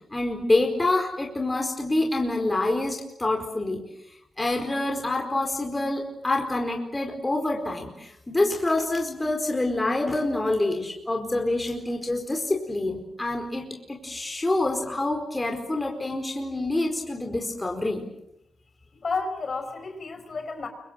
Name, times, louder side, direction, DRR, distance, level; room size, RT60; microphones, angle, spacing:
voice 1, 0.1-3.8 4.4-18.0, left 2 dB, 15° left, 3 dB, 4.6 m, -26 dB
voice 2, 18.9-20.7, left 4 dB, 45° left, 6 dB, 5.3 m, -31 dB
29.5 x 25.0 x 7.6 m, 0.82 s
wide cardioid pair, 120°, 0 cm